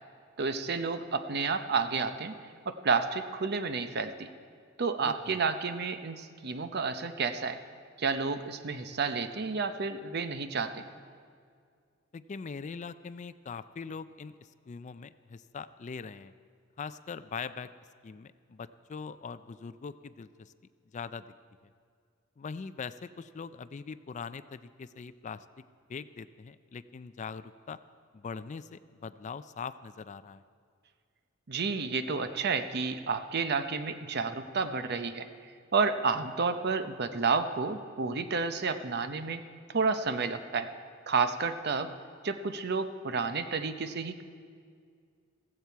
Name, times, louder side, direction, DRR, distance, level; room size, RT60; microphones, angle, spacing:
voice 1, 0.4-2.4 2.7-4.3 4.8-7.6 8.0-10.8 31.5-35.3 35.7-39.4 39.7-40.7 41.1-41.9 42.2-44.2, right 4 dB, 55° right, 10 dB, 0.7 m, -30 dB
voice 2, 5.0-5.4 12.1-14.3 14.7-16.3 16.8-17.7 18.0-20.5 20.9-21.2 22.4-25.4 25.9-27.8 28.1-30.4, left 5 dB, 35° left, 14 dB, 0.4 m, -42 dB
15.5 x 15.0 x 4.6 m, 2.2 s
head